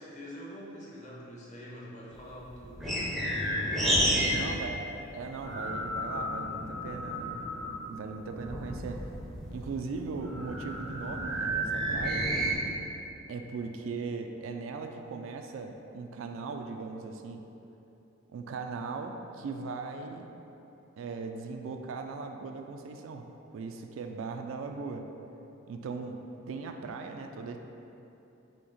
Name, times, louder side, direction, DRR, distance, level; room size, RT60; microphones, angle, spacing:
voice 1, 0.0-3.1 4.0-4.5, equal, 35° left, -5 dB, 0.7 m, -46 dB
sound 1, 2.1-4.5 4.7-7.8 8.3-12.5, equal, ahead, 0.5 m, -31 dB
voice 2, 4.3-7.5 7.9-9.1 9.5-12.3 13.3-17.4 18.3-20.3 21.0-25.1 25.7-26.2 26.5-27.6, right 4 dB, 70° right, 5 dB, 0.3 m, -39 dB
4.4 x 2.8 x 4.0 m, 2.9 s
head